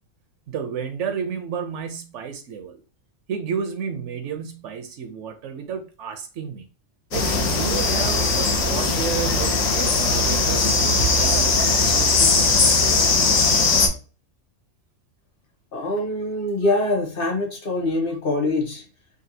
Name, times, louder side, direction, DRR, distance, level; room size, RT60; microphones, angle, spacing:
voice 1, 0.5-2.8 3.3-6.6 7.1-11.5 11.9-12.6, right 6 dB, 70° right, 0.8 m, -31 dB
sound 1, 7.1-13.9, left 3 dB, 85° left, 1.2 m, -19 dB
voice 2, 15.7-18.8, left 2 dB, 45° left, 1.0 m, -24 dB
3.9 x 2.2 x 2.7 m
omnidirectional pair, 1.4 m